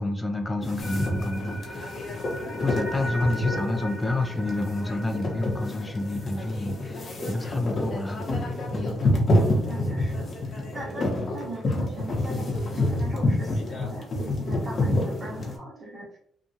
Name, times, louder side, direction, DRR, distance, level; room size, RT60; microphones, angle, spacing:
voice 1, 0.0-2.0 2.6-9.0, left 2 dB, 15° left, 4 dB, 0.4 m, -29 dB
sound 1, 0.6-15.6, left 1 dB, 50° left, 0.9 m, -28 dB
sound 2, 0.8-6.9, left 1 dB, 70° left, 1.0 m, -38 dB
voice 2, 9.6-16.2, right 2 dB, 35° right, -4 dB, 1.2 m, -40 dB
2.8 x 2.3 x 2.7 m, 0.65 s
cardioid pair, 90°, 0 cm